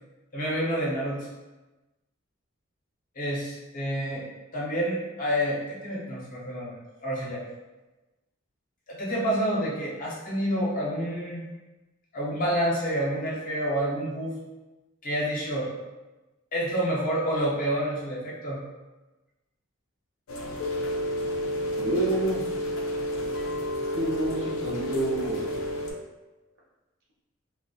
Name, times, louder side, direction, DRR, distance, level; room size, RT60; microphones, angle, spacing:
voice 1, 0.3-1.3 3.2-4.2 4.5-6.7 7.0-7.4 8.9-11.4 12.1-14.4 15.0-15.7 16.5-18.6, equal, 40° left, -5 dB, 0.7 m, -28 dB
Rain, 20.3-25.9, equal, 75° left, 0.4 m, -30 dB
voice 2, 21.8-22.4 23.9-25.5, right 1 dB, 50° right, -5 dB, 0.5 m, -28 dB
2.6 x 2.0 x 2.7 m, 1.1 s
head